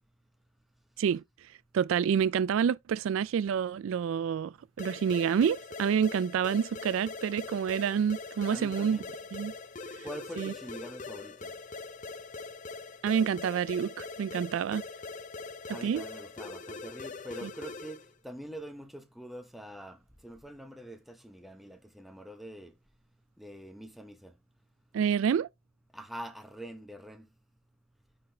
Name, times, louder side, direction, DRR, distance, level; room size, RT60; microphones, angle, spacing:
voice 1, 1.7-9.0 9.3-9.5 10.4-10.5 13.0-14.8 15.7-16.0 17.4-17.5 24.9-25.5, right 7 dB, 75° right, 0.3 m, -28 dB
sound 1, 4.8-18.1, left 3 dB, 40° left, 0.5 m, -42 dB
voice 2, 8.4-9.1 10.0-11.5 15.7-18.0 18.2-22.7 23.4-24.3 25.9-27.3, equal, ahead, 0.9 m, -44 dB
9.7 x 4.0 x 3.3 m
head